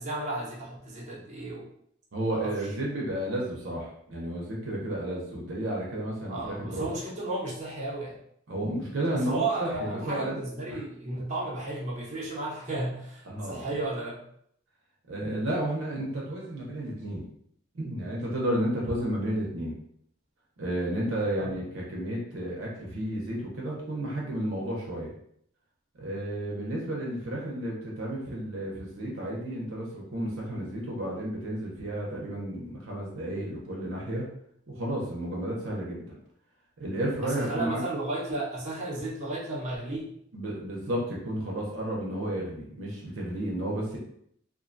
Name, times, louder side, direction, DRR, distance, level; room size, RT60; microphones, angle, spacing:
voice 1, 0.0-1.7 2.3-2.5 6.3-8.2 9.1-14.2 21.4-21.5 37.2-40.1, right 2 dB, 35° right, -6 dB, 0.7 m, -33 dB
voice 2, 2.1-6.9 8.5-10.4 10.7-10.8 13.2-13.8 15.1-17.3 17.7-19.8 20.6-25.1 25.9-34.3 34.7-36.2 36.8-37.8 40.3-44.0, right 1 dB, 75° right, -3 dB, 0.7 m, -32 dB
2.5 x 2.2 x 2.5 m, 0.70 s
head